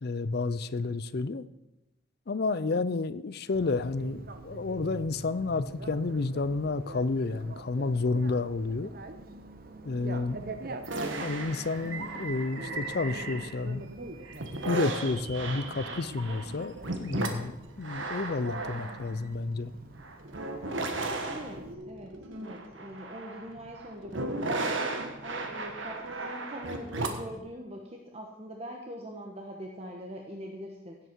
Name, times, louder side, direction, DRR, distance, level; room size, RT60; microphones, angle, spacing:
voice 1, 0.0-1.4 2.3-8.9 9.8-10.4 11.2-13.8 14.6-17.5 17.8-19.7, left 3 dB, 50° left, 0.5 m, -30 dB
voice 2, 2.5-2.8 10.3-10.7 21.0-31.0, equal, 30° right, 1.2 m, -43 dB
Bicycle, 3.5-21.7, right 2 dB, 50° right, 0.8 m, -45 dB
sound 1, 10.8-13.8 14.2-27.4, right 2 dB, 75° right, 1.4 m, -35 dB
16.5 x 7.9 x 4.6 m
head